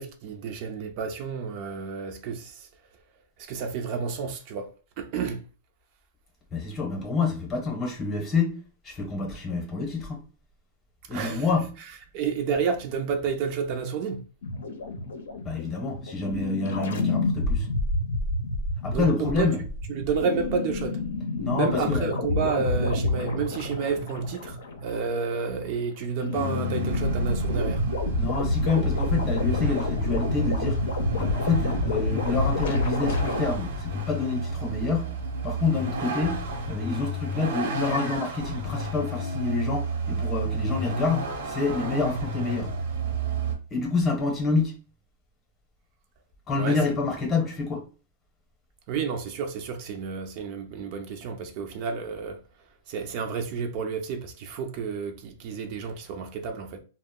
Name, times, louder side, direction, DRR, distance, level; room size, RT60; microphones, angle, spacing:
voice 1, 0.0-2.7 3.4-5.4 11.1-11.5 12.1-14.2 18.9-19.5 19.9-21.0 21.5-27.8 46.5-46.8 48.9-52.4 52.9-56.8, right 5 dB, 45° right, 0.4 m, -30 dB
voice 2, 6.5-10.2 11.1-11.7 15.4-17.7 18.8-19.6 21.4-22.1 28.2-30.8 31.1-35.1 35.4-42.7 43.7-44.8 46.5-47.8, left 4 dB, 20° left, 0.7 m, -28 dB
sound 1, 14.4-25.9 26.2-33.4, left 2 dB, 85° left, 0.6 m, -29 dB
Vehicle, 26.3-43.6, right 2 dB, 75° right, 0.8 m, -31 dB
2.0 x 2.0 x 3.5 m
supercardioid pair, 150°, 0 cm